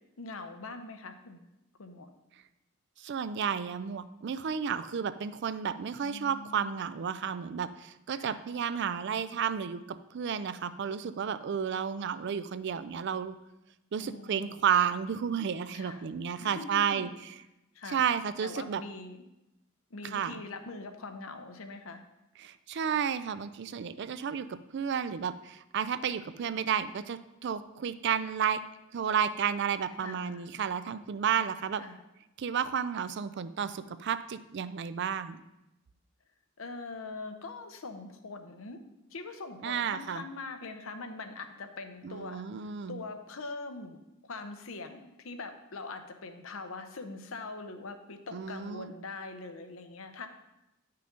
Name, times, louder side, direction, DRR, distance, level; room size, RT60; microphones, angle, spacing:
voice 1, 0.2-1.5 1.8-2.1 6.0-6.8 8.1-8.4 14.0-14.6 15.7-16.1 16.4-17.1 17.7-18.0 18.4-19.2 19.9-22.0 30.0-30.5 31.8-32.0 36.6-38.8 39.1-42.4 42.9-44.0 44.3-50.3, left 3 dB, 70° left, 7 dB, 0.8 m, -42 dB
voice 2, 3.0-13.3 13.9-17.1 17.9-18.8 20.1-20.4 22.4-28.6 28.9-31.8 32.4-35.4 39.6-40.2 42.0-43.0 48.3-48.9, right 7 dB, 55° right, 13 dB, 0.4 m, -32 dB
9.9 x 5.7 x 3.7 m, 0.93 s
head